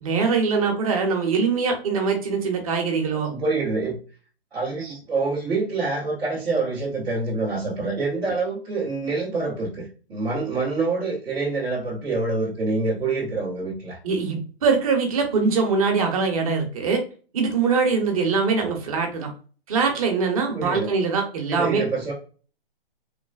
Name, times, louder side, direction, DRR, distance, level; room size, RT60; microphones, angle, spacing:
voice 1, 0.0-3.3 14.0-17.0 17.3-19.3 19.7-21.8, right 5 dB, 35° right, 3 dB, 0.7 m, -22 dB
voice 2, 3.1-4.0 4.5-14.0 20.5-20.9 21.5-22.1, right 3 dB, 5° right, -10 dB, 0.4 m, -26 dB
3.1 x 2.1 x 2.3 m, 0.38 s
figure-of-eight pair, 135°, 30 cm